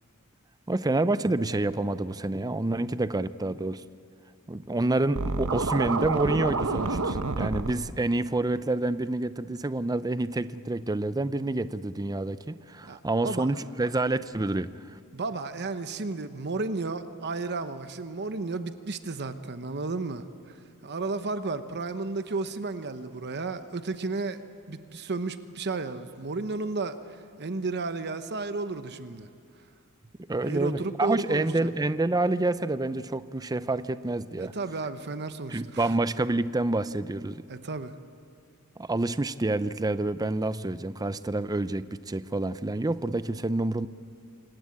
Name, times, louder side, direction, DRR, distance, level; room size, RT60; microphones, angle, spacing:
voice 1, 0.7-3.8 4.5-14.7 30.3-34.5 35.5-37.4 38.8-43.9, right 2 dB, 15° right, 14 dB, 0.5 m, -28 dB
Scratching (performance technique), 5.1-7.7, right 3 dB, 70° right, 1.1 m, -28 dB
voice 2, 15.1-24.4 24.7-29.3 30.4-31.7 34.4-35.9 37.5-37.9, right 3 dB, 50° right, 10 dB, 1.0 m, -33 dB
27.0 x 19.5 x 8.6 m, 2.3 s
head